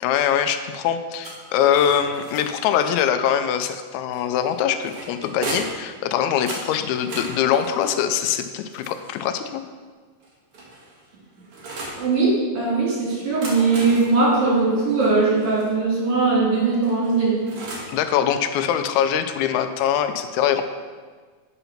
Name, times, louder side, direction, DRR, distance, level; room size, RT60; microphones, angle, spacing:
voice 1, 0.0-9.6 17.9-20.6, left 9 dB, 80° left, 8 dB, 1.7 m, -23 dB
sound 1, 1.2-2.8 4.1-5.9 6.5-9.4 10.2-12.0 13.2-15.7 16.8-18.0, right 2 dB, 55° right, 1.8 m, -37 dB
voice 2, 12.0-17.4, right 3 dB, 75° right, -6 dB, 3.9 m, -20 dB
7.9 x 4.0 x 5.7 m, 1.5 s
omnidirectional pair, 3.6 m